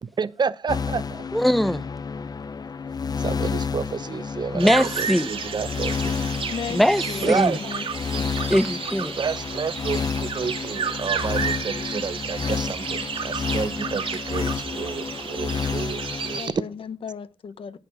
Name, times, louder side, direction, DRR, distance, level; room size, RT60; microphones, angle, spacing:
voice 1, 0.0-1.3 3.2-6.1 7.2-7.6 9.2-16.6, right 5 dB, 50° right, 0.6 m, -29 dB
sound 1, 0.7-16.4, left 5 dB, 45° left, 0.5 m, -30 dB
voice 2, 1.3-1.9 4.5-5.3 6.7-7.5 8.5-9.2, equal, ahead, 0.6 m, -21 dB
sound 2, 4.6-16.5, right 6 dB, 80° right, 2.2 m, -32 dB
voice 3, 6.5-6.8 7.1-7.8 8.1-8.3 16.4-17.8, left 6 dB, 80° left, 0.9 m, -34 dB
17.5 x 6.5 x 4.8 m
cardioid pair, 80°, 9 cm